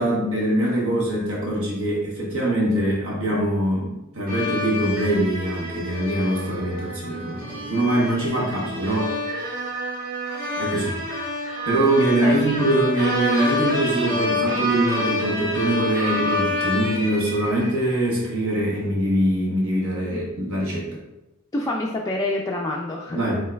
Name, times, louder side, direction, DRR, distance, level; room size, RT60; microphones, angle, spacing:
voice 1, 0.0-9.3 10.6-11.0 11.6-21.0 23.1-23.4, right 1 dB, 65° right, -4 dB, 1.1 m, -23 dB
sound 1, 4.3-18.0, left 1 dB, 40° right, 1.0 m, -28 dB
voice 2, 12.2-12.5 20.1-20.2 21.5-23.2, left 1 dB, 15° left, -1 dB, 0.3 m, -27 dB
5.3 x 3.8 x 2.2 m, 0.94 s
head